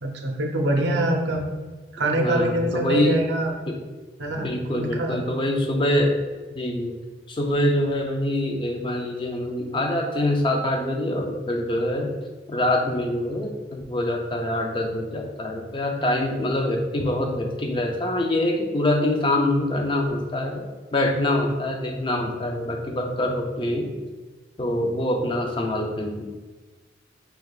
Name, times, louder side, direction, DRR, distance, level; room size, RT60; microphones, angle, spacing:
voice 1, 0.0-1.4 1.9-3.5 4.2-5.2, right 1 dB, 65° right, 2 dB, 0.6 m, -24 dB
voice 2, 2.0-3.2 3.7-3.8 4.4-6.1 6.5-6.9 7.3-12.1 12.5-20.7 20.9-23.9 24.6-26.3, left 1 dB, 25° left, 2 dB, 0.4 m, -25 dB
4.6 x 3.4 x 2.3 m, 1.3 s
head